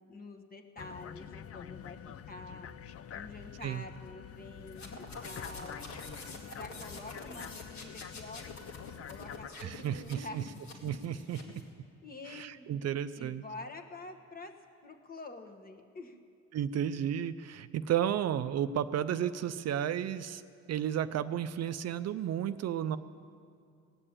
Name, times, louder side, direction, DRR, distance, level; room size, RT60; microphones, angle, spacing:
voice 1, 0.0-2.0 2.3-2.7 3.1-5.8 6.3-8.8 9.1-10.5 11.4-11.7 12.0-12.9 13.2-14.6 14.8-16.2, left 2 dB, 30° left, 4 dB, 1.3 m, -47 dB
sound 1, 0.8-9.5, left 8 dB, 50° left, 0.6 m, -46 dB
sound 2, 4.7-11.7, left 3 dB, 65° left, 2.2 m, -47 dB
voice 2, 9.6-10.4 10.8-11.4 12.3-13.4 16.5-20.4 20.7-23.0, right 10 dB, 60° right, 12 dB, 0.5 m, -33 dB
18.0 x 6.7 x 8.8 m, 2.3 s
cardioid pair, 90°, 30 cm